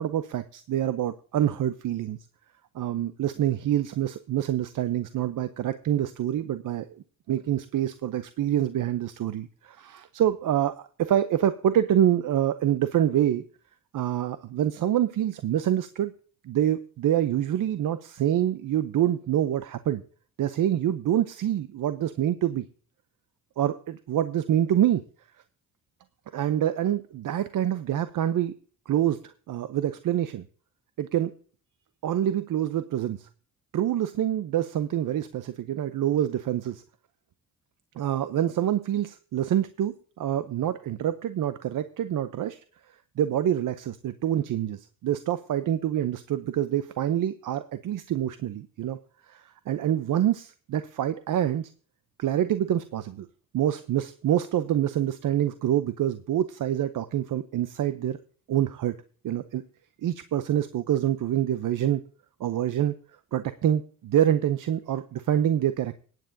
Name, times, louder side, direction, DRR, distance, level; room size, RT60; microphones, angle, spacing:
voice 1, 0.0-2.2 2.7-13.4 13.9-16.1 16.4-20.0 20.4-22.7 23.6-25.0 26.3-28.5 28.9-30.5 31.0-31.3 32.0-33.3 33.7-36.8 38.0-42.6 43.2-49.0 49.3-51.7 52.2-53.3 53.5-58.2 58.5-59.0 59.2-59.6 60.0-62.0 62.4-62.9 63.3-66.1, right 11 dB, 65° right, 12 dB, 0.7 m, -26 dB
18.0 x 9.3 x 2.7 m, 0.42 s
cardioid pair, 80°, 34 cm